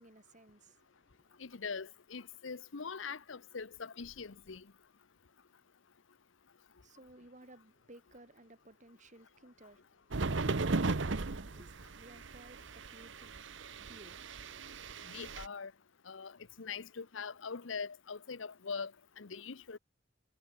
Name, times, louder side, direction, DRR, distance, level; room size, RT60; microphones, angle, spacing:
voice 1, 0.0-1.5 6.8-14.8, right 1 dB, 40° right, 2.5 m, -59 dB
voice 2, 1.4-4.6 15.1-15.7 16.1-16.3 16.6-18.9 19.2-19.8, left 5 dB, 80° left, 0.9 m, -42 dB
sound 1, 10.1-15.5, right 3 dB, 75° right, 1.0 m, -36 dB
head